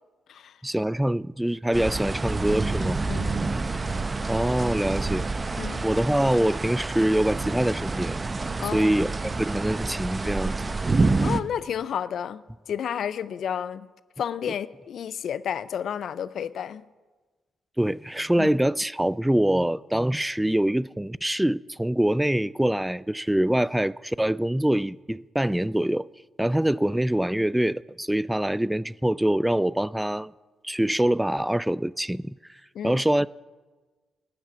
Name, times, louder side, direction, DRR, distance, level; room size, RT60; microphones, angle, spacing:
voice 1, 0.6-3.0 4.3-5.3 5.8-8.2 8.7-10.6 17.8-26.1 26.4-30.3 30.6-32.4 32.8-33.3, right 1 dB, 5° right, 0.3 m, -24 dB
sound 1, 1.7-11.4, right 3 dB, 30° right, 0.7 m, -28 dB
voice 2, 3.1-3.5 5.6-5.9 8.6-9.0 11.2-13.9 14.2-16.8 18.4-18.5 32.7-33.0, left 8 dB, 65° left, 0.5 m, -31 dB
13.5 x 7.3 x 9.3 m
hypercardioid pair, 45°, 0 cm